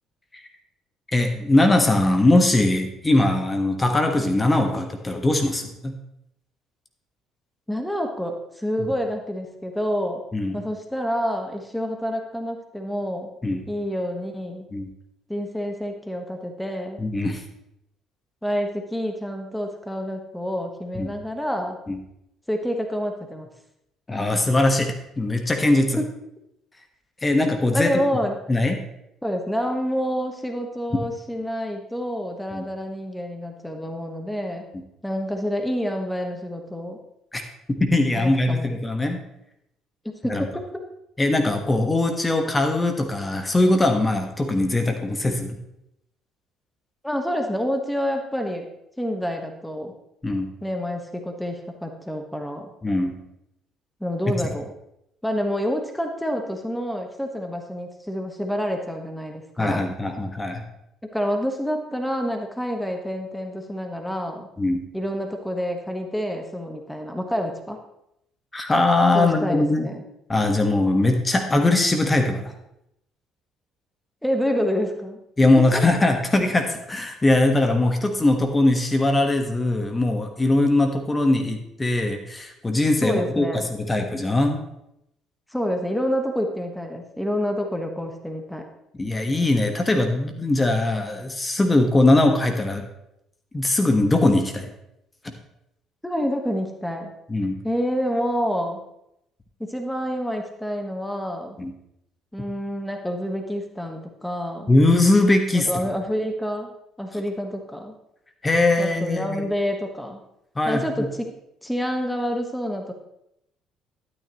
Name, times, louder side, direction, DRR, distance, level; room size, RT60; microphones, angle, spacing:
voice 1, 1.1-5.9 8.8-8.9 10.3-10.6 13.4-13.6 14.7-14.9 17.0-17.4 20.9-21.1 21.9-22.0 24.1-26.0 27.2-27.9 28.5-28.8 32.5-32.6 37.3-37.4 37.8-39.2 40.3-40.4 41.2-45.6 50.2-50.5 52.8-53.1 59.6-60.6 64.6-64.8 68.5-69.9 70.3-72.5 75.4-83.5 83.8-84.6 89.0-92.8 93.5-94.7 95.2-95.3 97.3-97.6 101.6-101.7 104.7-105.7 108.4-109.4 110.5-111.1, left 2 dB, 20° left, 5 dB, 1.4 m, -21 dB
voice 2, 7.7-10.2 10.5-13.3 13.7-14.7 15.3-17.0 18.4-21.8 22.5-23.5 26.0-26.1 27.7-28.4 29.2-34.7 35.0-37.0 38.1-38.7 40.2-40.6 47.0-48.7 49.0-49.9 50.6-52.7 54.0-54.7 55.2-59.9 61.0-64.5 64.9-67.8 69.1-70.0 74.2-75.2 75.6-75.9 83.0-83.7 85.5-88.7 96.0-97.1 97.6-98.8 99.6-101.6 102.3-104.7 105.5-106.7 107.0-107.9 108.8-110.2 110.7-111.3 111.6-112.9, equal, 5° left, 4 dB, 1.4 m, -28 dB
12.0 x 9.7 x 3.1 m, 0.81 s
hypercardioid pair, 50°, 0 cm